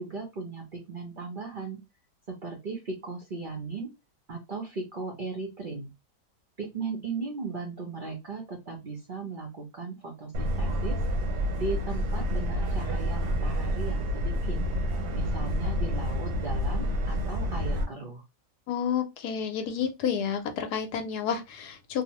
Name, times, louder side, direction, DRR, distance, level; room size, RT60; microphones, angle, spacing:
voice 1, 0.0-1.8 2.3-3.9 4.3-5.9 6.6-11.0 11.6-14.6 15.1-18.2, right 4 dB, 65° right, 0.5 m, -37 dB
Subway metro underground, 10.3-17.8, equal, 90° right, 1.3 m, -28 dB
voice 2, 18.7-22.0, left 7 dB, 75° left, 1.1 m, -30 dB
2.8 x 2.0 x 2.9 m
omnidirectional pair, 1.8 m